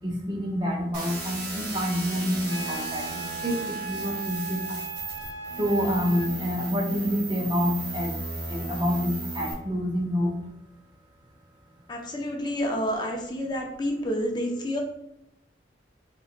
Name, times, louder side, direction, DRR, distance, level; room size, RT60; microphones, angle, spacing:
voice 1, 0.0-4.8 5.6-8.1 8.4-10.4, equal, 25° right, 0 dB, 0.6 m, -27 dB
sound 1, 0.9-9.5, right 2 dB, 60° right, 1.5 m, -36 dB
Wind instrument woodwind instrument, 2.5-6.3, right 3 dB, 85° right, 1.1 m, -37 dB
voice 2, 11.9-14.8, equal, 25° left, 1 dB, 0.6 m, -29 dB
4.1 x 3.0 x 2.5 m, 0.80 s
head